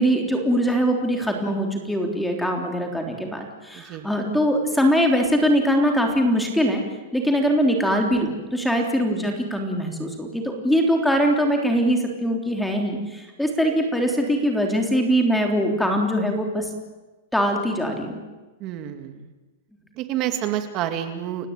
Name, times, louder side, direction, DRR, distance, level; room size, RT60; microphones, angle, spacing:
voice 1, 0.0-6.8 7.1-16.7 17.3-18.2, equal, ahead, 2 dB, 3.5 m, -22 dB
voice 2, 3.7-4.1 18.6-19.2 20.0-21.5, right 11 dB, 30° right, 8 dB, 2.3 m, -28 dB
30.0 x 17.0 x 9.1 m, 1.1 s
supercardioid pair, 160°, 0 cm